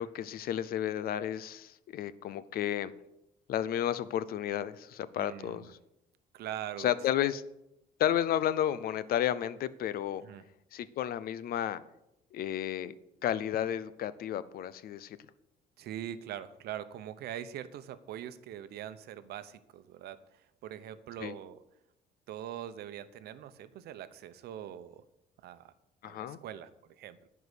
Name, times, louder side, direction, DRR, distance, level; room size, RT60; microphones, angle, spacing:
voice 1, 0.0-2.9 3.5-5.8 6.8-7.4 8.0-10.2 10.7-11.8 12.3-12.9 13.2-15.2 21.2-21.3 26.0-26.4, left 11 dB, 60° left, 16 dB, 0.6 m, -32 dB
voice 2, 5.2-5.7 6.3-6.9 10.2-10.4 15.8-21.6 22.3-25.0 25.4-25.7 26.0-27.3, right 11 dB, 70° right, 13 dB, 0.8 m, -43 dB
10.5 x 4.8 x 8.1 m, 0.86 s
cardioid pair, 110°, 17 cm